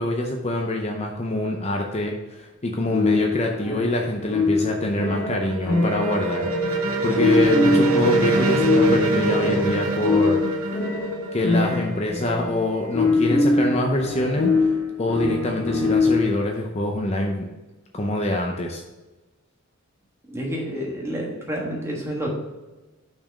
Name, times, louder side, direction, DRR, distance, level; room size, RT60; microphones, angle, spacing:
voice 1, 0.0-10.4 11.3-14.7 15.0-17.5 17.9-18.8, left 1 dB, 30° left, 1 dB, 0.6 m, -25 dB
sound 1, 2.9-16.5, left 3 dB, 80° left, 1.4 m, -23 dB
sound 2, 4.9-12.5, right 2 dB, 80° right, 0.9 m, -24 dB
voice 2, 20.3-22.4, equal, 10° right, -2 dB, 1.3 m, -29 dB
5.9 x 4.5 x 6.0 m, 1.1 s
head